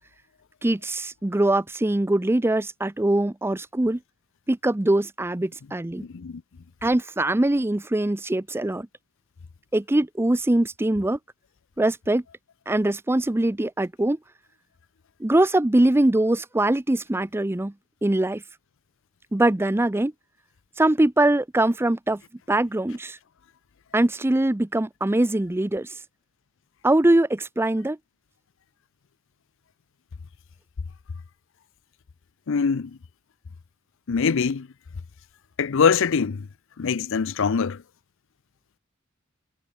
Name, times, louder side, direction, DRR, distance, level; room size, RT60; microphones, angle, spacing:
voice 1, 0.6-4.0 4.5-6.0 6.8-8.9 9.7-11.2 11.8-12.2 12.7-14.2 15.2-17.7 18.0-18.4 19.3-20.1 20.8-22.2 22.5-23.2 23.9-25.9 26.8-28.0, right 1 dB, 10° right, 0.5 m, -22 dB
voice 2, 6.0-6.4 32.5-32.9 34.1-34.7 35.6-36.5 36.8-37.8, left 5 dB, 65° left, 0.5 m, -23 dB
head